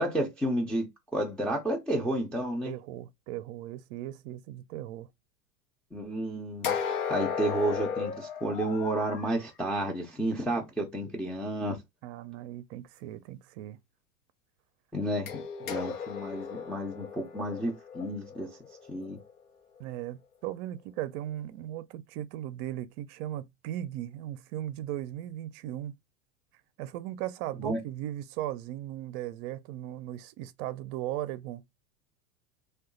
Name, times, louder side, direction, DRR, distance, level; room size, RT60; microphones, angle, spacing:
voice 1, 0.0-2.7 5.9-11.8 14.9-18.5 18.9-19.2 27.6-27.8, right 1 dB, ahead, 0.4 m, -31 dB
voice 2, 2.6-5.1 12.0-13.8 19.8-25.9 26.8-31.6, right 13 dB, 50° right, 0.5 m, -37 dB
sound 1, 6.6-9.3 15.3-19.3, left 7 dB, 80° left, 0.8 m, -35 dB
2.7 x 2.3 x 3.7 m
hypercardioid pair, 100°, 45 cm